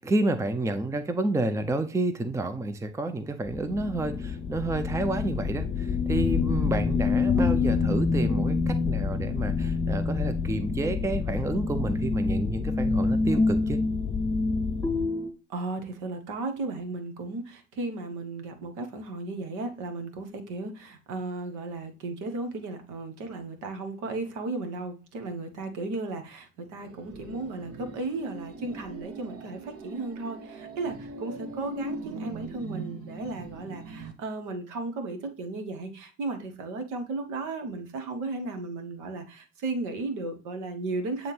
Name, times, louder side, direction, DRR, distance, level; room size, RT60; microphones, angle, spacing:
voice 1, 0.0-13.8, right 2 dB, 10° right, 0.6 m, -29 dB
sound 1, 3.5-15.1, left 7 dB, 30° left, 0.5 m, -31 dB
sound 2, 3.5-15.3, left 3 dB, 10° left, 2.1 m, -28 dB
voice 2, 15.5-41.3, right 3 dB, 60° right, 1.4 m, -35 dB
sound 3, 26.8-34.1, right 3 dB, 45° right, 1.1 m, -40 dB
8.6 x 3.5 x 3.3 m
figure-of-eight pair, 55°, 34 cm